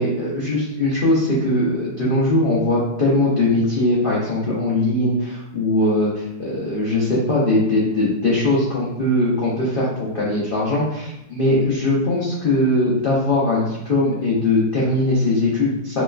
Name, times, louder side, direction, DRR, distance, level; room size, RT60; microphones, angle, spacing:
voice 1, 0.0-16.0, left 2 dB, 80° left, -7 dB, 0.4 m, -20 dB
4.1 x 2.2 x 2.4 m, 0.88 s
omnidirectional pair, 1.9 m